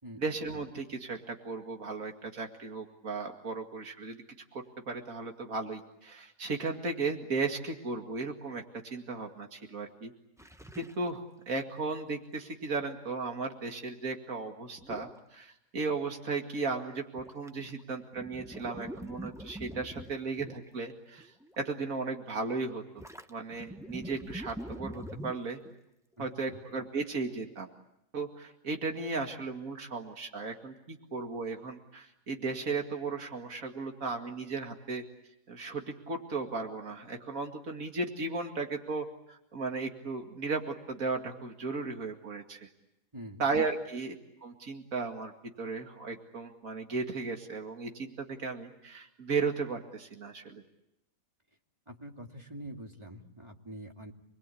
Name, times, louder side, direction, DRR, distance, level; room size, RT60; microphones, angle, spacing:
voice 1, 0.2-4.2 4.5-10.1 10.8-22.8 23.3-25.6 26.2-27.7 28.1-35.0 35.5-42.7 43.4-44.1 44.4-45.3 45.6-50.6, right 4 dB, 75° right, 3 dB, 2.7 m, -35 dB
sound 1, 10.4-11.1 11.6-11.7 14.8-15.2 17.2-17.8 18.1-20.8 21.2-21.6 23.0-25.8, equal, 5° right, 0.7 m, -44 dB
voice 2, 26.2-26.6 43.1-43.4 51.9-54.1, right 1 dB, 20° right, 2 dB, 2.6 m, -45 dB
29.0 x 21.5 x 8.6 m, 0.85 s
omnidirectional pair, 1.5 m